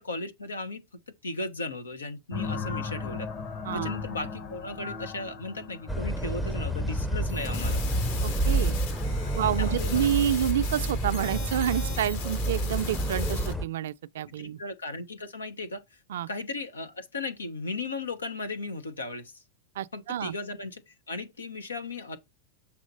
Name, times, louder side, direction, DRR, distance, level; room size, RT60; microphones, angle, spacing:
voice 1, 0.0-3.3 3.7-7.8 9.6-10.1 14.4-15.8 16.3-19.4 19.9-22.2, left 3 dB, 90° left, 0.9 m, -36 dB
sound 1, 2.3-7.7, left 4 dB, 40° left, 1.1 m, -37 dB
sound 2, 5.9-13.7, right 1 dB, 5° left, 0.6 m, -29 dB
sound 3, 7.3-13.5, left 6 dB, 65° left, 2.1 m, -40 dB
voice 2, 8.4-8.8 9.3-14.6 16.1-16.3 19.8-20.3, right 9 dB, 70° right, 0.4 m, -28 dB
7.3 x 3.0 x 5.3 m
hypercardioid pair, 100°, 0 cm